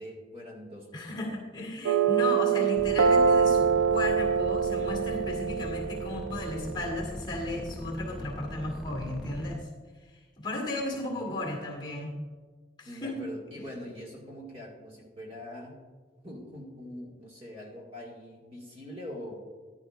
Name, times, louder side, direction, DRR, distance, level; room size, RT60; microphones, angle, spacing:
voice 1, 0.0-1.3 10.8-11.3 12.8-15.7 16.2-19.4, equal, 30° right, -3 dB, 2.0 m, -43 dB
voice 2, 0.9-9.7 10.4-12.1 12.8-13.3, left 2 dB, 25° left, 0 dB, 1.9 m, -35 dB
sound 1, 1.8-6.9, right 6 dB, 90° right, 0.5 m, -25 dB
sound 2, 2.8-9.6, equal, ahead, 0.3 m, -40 dB
15.0 x 10.5 x 2.5 m, 1.4 s
head